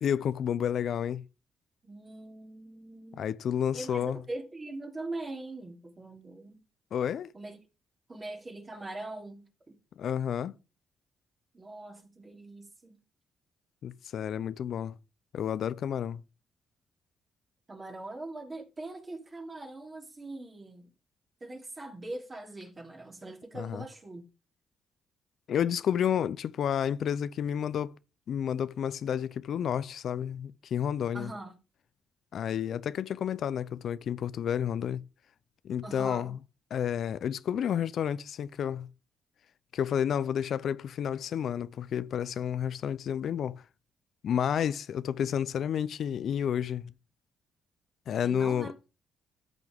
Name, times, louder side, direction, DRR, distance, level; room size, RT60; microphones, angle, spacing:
voice 1, 0.0-1.2 3.2-4.2 6.9-7.3 10.0-10.5 13.8-14.9 15.3-16.2 23.6-23.8 25.5-27.9 28.3-31.3 32.3-35.0 35.6-36.4 36.7-38.9 39.7-43.6 44.2-46.9 48.1-48.7, left 9 dB, 65° left, 0.5 m, -30 dB
voice 2, 1.8-3.3 3.7-6.6 7.3-7.6 8.1-9.7 11.5-13.0 17.7-20.9 21.4-24.3 31.1-31.6 35.8-36.3 48.2-48.7, right 2 dB, 30° right, 3.1 m, -42 dB
13.5 x 6.1 x 3.5 m
cardioid pair, 90°, 0 cm